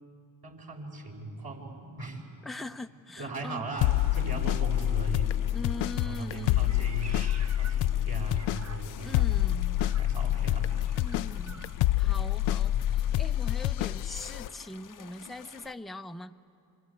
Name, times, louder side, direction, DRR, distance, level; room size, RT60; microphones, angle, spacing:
voice 1, 0.4-2.2 3.2-5.4 6.0-7.2 7.5-9.5 9.9-10.7 11.3-11.5 12.7-12.8, right 2 dB, 50° right, 0 dB, 6.2 m, -39 dB
voice 2, 2.4-3.6 5.5-6.9 9.0-9.8 11.0-11.6 12.0-16.3, left 2 dB, ahead, 7 dB, 0.8 m, -41 dB
sound 1, 3.8-14.5, left 13 dB, 70° left, 0.6 m, -27 dB
sound 2, 3.8-15.7, left 7 dB, 40° left, 0.9 m, -48 dB
Meow, 6.6-9.2 9.7-11.8, right 5 dB, 35° right, 1.1 m, -50 dB
26.0 x 24.0 x 8.6 m, 2.6 s
supercardioid pair, 50°, 48 cm